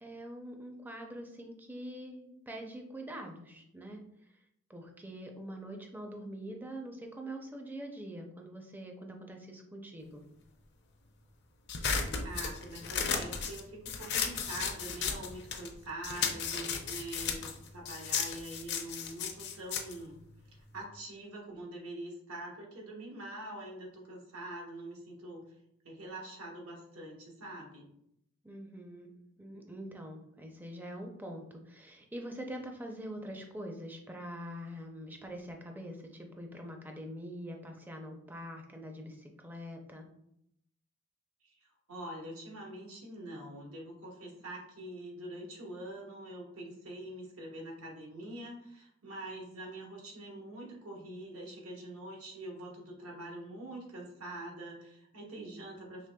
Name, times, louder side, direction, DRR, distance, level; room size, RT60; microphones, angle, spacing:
voice 1, 0.0-4.3 4.7-10.2 28.4-40.1, equal, 10° right, 2 dB, 0.4 m, -44 dB
sound 1, 11.7-15.7 16.0-20.8, left 6 dB, 50° left, 0.5 m, -35 dB
voice 2, 12.2-20.2 20.7-25.5 25.8-27.9 41.4-56.1, right 1 dB, 80° right, -1 dB, 1.2 m, -44 dB
4.9 x 3.3 x 2.2 m, 0.77 s
head